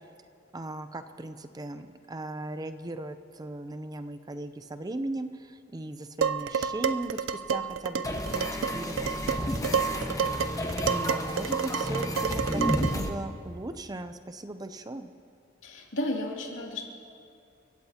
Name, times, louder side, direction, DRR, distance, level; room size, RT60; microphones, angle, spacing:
voice 1, 0.5-10.1 10.9-15.1, right 1 dB, 20° right, 10 dB, 0.5 m, -38 dB
Dishes pots and pans, 6.2-13.1, right 6 dB, 70° right, 0.5 m, -30 dB
sound 1, 8.0-13.1, left 1 dB, 15° left, 1.0 m, -32 dB
voice 2, 15.6-16.9, left 1 dB, 75° left, -1 dB, 2.6 m, -33 dB
29.5 x 16.0 x 2.9 m, 2.5 s
head